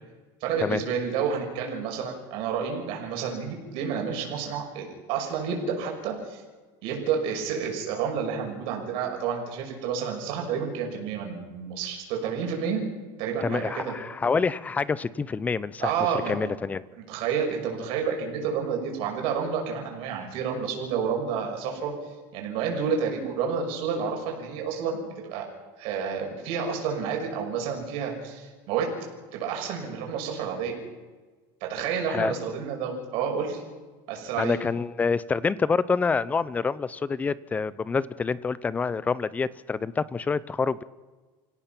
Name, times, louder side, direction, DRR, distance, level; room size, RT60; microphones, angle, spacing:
voice 1, 0.4-6.4 6.8-12.8 13.2-13.9 15.8-16.5 17.1-21.9 22.3-25.5 25.8-28.9 29.3-30.8 31.6-33.6 34.1-34.6, right 6 dB, 65° right, 1 dB, 6.2 m, -30 dB
voice 2, 13.4-15.9 16.3-16.8 32.1-32.3 34.4-40.8, left 5 dB, 15° left, 18 dB, 0.6 m, -27 dB
28.5 x 17.0 x 6.0 m, 1.3 s
cardioid pair, 155°, 10 cm